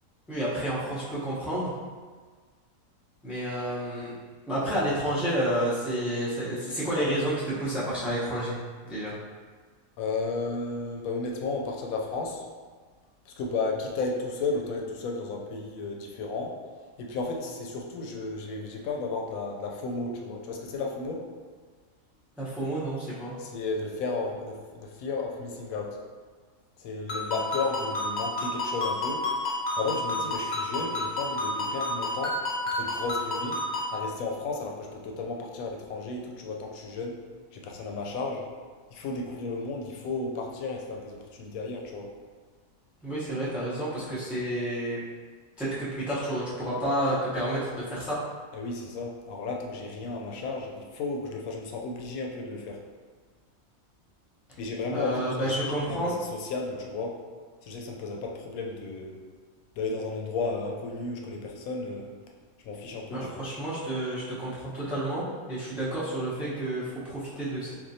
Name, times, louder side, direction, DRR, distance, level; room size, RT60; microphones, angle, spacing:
voice 1, 0.3-1.7 3.2-4.1 4.5-8.6 8.8-9.1 22.4-23.3 43.0-45.0 45.6-48.2 54.9-56.2 63.1-67.7, right 1 dB, ahead, -9 dB, 0.5 m, -30 dB
voice 2, 10.0-12.5 13.3-16.6 17.0-21.3 23.4-26.0 26.8-29.3 29.8-32.4 32.7-33.6 33.9-37.2 37.5-38.5 38.9-42.1 48.5-52.8 54.6-55.6 56.0-57.2 57.6-59.2 59.8-62.2 62.6-63.5, left 3 dB, 90° left, 1 dB, 1.0 m, -33 dB
Ringtone, 27.1-34.0, left 2 dB, 40° left, 0.7 m, -30 dB
4.3 x 2.4 x 2.7 m, 1.5 s
omnidirectional pair, 1.4 m